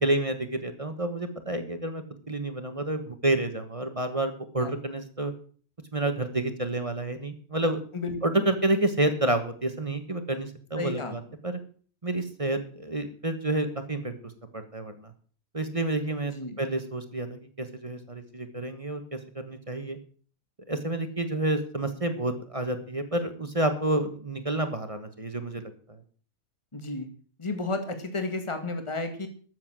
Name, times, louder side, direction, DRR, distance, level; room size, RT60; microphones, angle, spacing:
voice 1, 0.0-5.3 5.9-7.8 8.2-11.6 12.0-14.1 14.5-14.9 15.5-20.0 20.7-26.0, right 2 dB, 25° right, 8 dB, 1.3 m, -29 dB
voice 2, 10.8-11.1 16.3-16.6 26.7-27.1 27.4-29.3, left 3 dB, 20° left, 7 dB, 1.9 m, -32 dB
13.0 x 7.9 x 7.5 m, 0.44 s
omnidirectional pair, 1.5 m